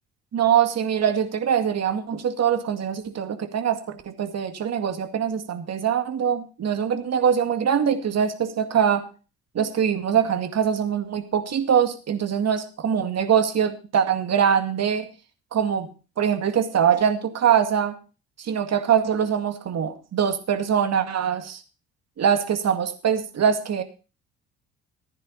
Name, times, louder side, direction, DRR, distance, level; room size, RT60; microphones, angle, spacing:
voice 1, 0.3-9.1 9.5-15.1 15.5-15.9 16.2-18.0 18.4-21.6 22.2-23.8, right 8 dB, 50° right, 8 dB, 2.2 m, -23 dB
14.5 x 10.0 x 4.1 m, 0.33 s
hypercardioid pair, 55°, 34 cm